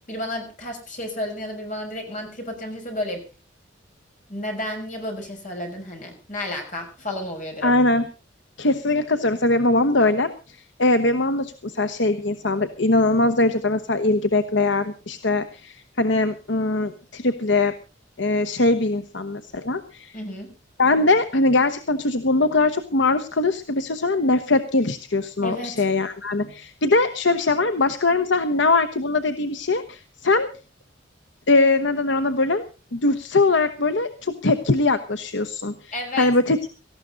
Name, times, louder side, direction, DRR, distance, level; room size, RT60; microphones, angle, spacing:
voice 1, 0.1-3.2 4.3-7.7 20.1-20.5 25.4-25.8 35.9-36.3, left 1 dB, 40° left, 2 dB, 6.3 m, -32 dB
voice 2, 7.6-8.1 8.6-17.7 18.2-20.2 20.8-30.5 31.5-32.6 32.9-36.8, left 2 dB, 65° left, 10 dB, 1.0 m, -21 dB
18.0 x 14.5 x 4.0 m, 0.33 s
head